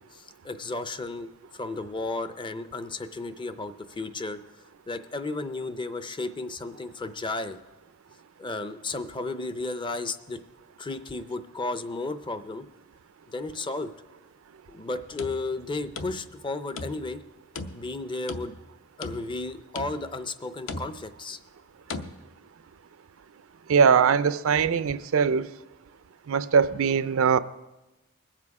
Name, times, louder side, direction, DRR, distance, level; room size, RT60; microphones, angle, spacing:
voice 1, 0.1-1.3 1.5-4.4 4.9-7.6 8.4-10.4 10.8-12.7 13.3-13.9 14.7-17.2 17.7-18.5 19.0-21.4, left 2 dB, 20° left, 11 dB, 0.5 m, -33 dB
sound 1, 15.0-16.5 16.8-17.2 17.6-18.7 19.0-19.5 19.8-20.2 20.7-21.2 21.9-22.1, left 3 dB, 60° left, 0.8 m, -38 dB
voice 2, 23.7-25.5 26.3-27.4, right 6 dB, 65° right, 15 dB, 0.4 m, -21 dB
21.0 x 7.5 x 4.7 m, 1.1 s
head